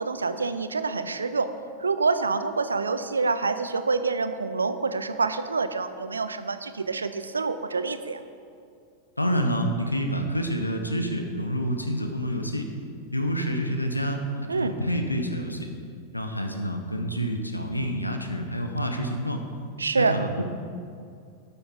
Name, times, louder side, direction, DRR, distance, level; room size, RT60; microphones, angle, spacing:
voice 1, 0.0-1.5 1.8-8.2 14.5-14.7 19.8-20.1, right 4 dB, 75° right, 11 dB, 0.5 m, -26 dB
voice 2, 9.2-12.7 13.1-15.7 16.1-19.4 20.0-20.4, equal, 85° left, 4 dB, 0.9 m, -28 dB
11.5 x 6.9 x 3.7 m, 2.3 s
figure-of-eight pair, 90°, 0 cm